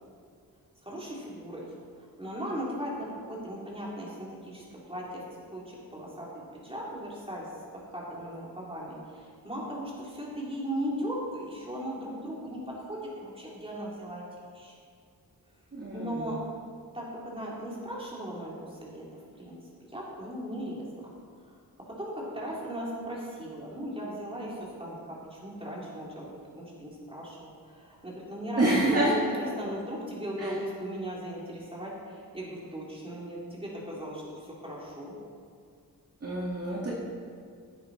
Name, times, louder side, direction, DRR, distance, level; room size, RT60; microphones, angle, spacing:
voice 1, 0.8-1.6 2.0-4.6 4.9-5.2 5.5-7.5 7.9-14.2 14.5-14.7 15.9-16.4 16.9-19.0 19.4-19.6 19.8-20.9 22.0-35.1, right 1 dB, 15° right, -5 dB, 3.5 m, -37 dB
voice 2, 15.7-16.3 28.6-29.4 30.4-30.5 36.2-36.9, right 1 dB, 40° right, -6 dB, 2.2 m, -27 dB
17.0 x 8.8 x 4.4 m, 2.2 s
wide cardioid pair, 115°, 38 cm